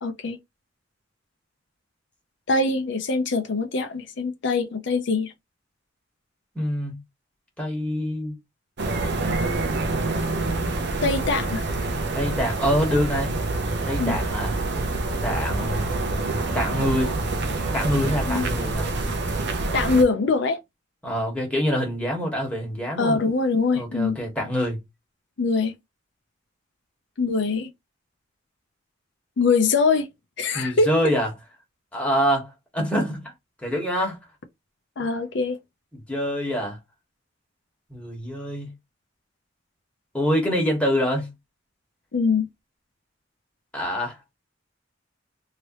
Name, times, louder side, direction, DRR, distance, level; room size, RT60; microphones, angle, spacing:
voice 1, 0.0-0.4 2.5-5.3 11.0-11.6 14.0-14.2 18.3-18.4 19.7-20.6 23.0-24.2 25.4-25.7 27.2-27.7 29.4-30.1 30.4-30.9 35.0-35.6 42.1-42.5, left 4 dB, 65° left, 0.5 m, -23 dB
voice 2, 6.5-7.0 7.6-8.3 12.1-13.3 13.8-14.5 15.2-16.0 16.5-17.1 17.7-18.9 21.0-23.2 23.7-24.8 30.5-31.3 31.9-33.3 33.6-34.2 35.0-35.1 36.1-36.8 37.9-38.7 40.1-41.3 43.7-44.4, equal, 5° left, 1.4 m, -25 dB
sound 1, 8.8-20.0, right 2 dB, 65° right, 0.7 m, -26 dB
3.1 x 2.8 x 3.0 m
head